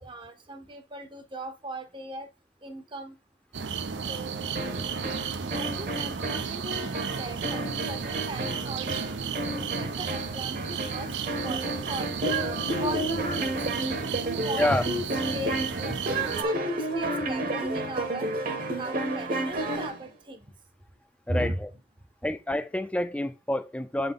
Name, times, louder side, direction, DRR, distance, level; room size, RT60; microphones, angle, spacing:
voice 1, 0.0-2.3 2.6-3.1 4.1-4.5 5.5-12.3 12.8-13.6 14.2-18.3 18.8-20.4 21.3-21.6, right 1 dB, 25° right, 0.7 m, -38 dB
sound 1, 3.5-16.4, right 6 dB, 80° right, 0.6 m, -33 dB
sound 2, 4.5-20.0, right 1 dB, 50° right, 1.0 m, -31 dB
voice 2, 21.3-21.7 22.2-24.1, left 1 dB, 5° left, 0.4 m, -28 dB
7.6 x 3.9 x 3.6 m
head